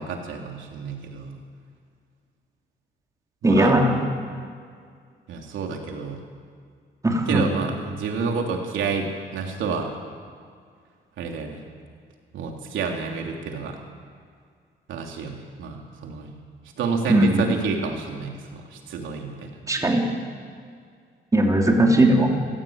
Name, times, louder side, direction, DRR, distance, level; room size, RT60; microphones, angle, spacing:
voice 1, 0.0-1.3 3.4-3.8 5.3-6.2 7.3-9.9 11.2-11.6 12.3-13.8 14.9-16.3 16.8-19.5, right 5 dB, 85° right, 2 dB, 3.2 m, -29 dB
voice 2, 3.4-4.0 7.0-7.5 17.1-17.4 19.7-20.0 21.3-22.3, right 1 dB, 15° right, 1 dB, 3.4 m, -18 dB
27.5 x 16.0 x 8.9 m, 2.1 s
cardioid pair, 135°, 19 cm